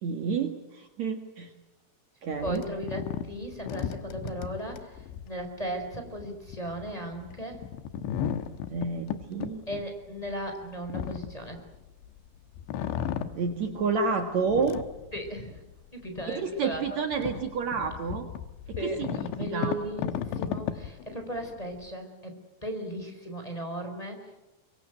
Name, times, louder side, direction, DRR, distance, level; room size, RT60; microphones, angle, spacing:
voice 1, 0.0-1.5 2.2-2.6 8.7-9.6 13.3-14.8 16.4-18.3 18.7-19.8, right 5 dB, 85° right, 5 dB, 1.5 m, -30 dB
sound 1, 2.3-12.2 12.5-14.0 14.4-15.7 16.2-16.3 16.7-21.8, left 9 dB, 75° left, 3.1 m, -35 dB
voice 2, 2.4-7.6 9.7-11.6 15.1-15.6 15.9-17.0 18.8-22.3 22.6-24.4, right 1 dB, 10° left, 3 dB, 3.8 m, -36 dB
24.5 x 24.0 x 9.1 m, 0.96 s
omnidirectional pair, 6.0 m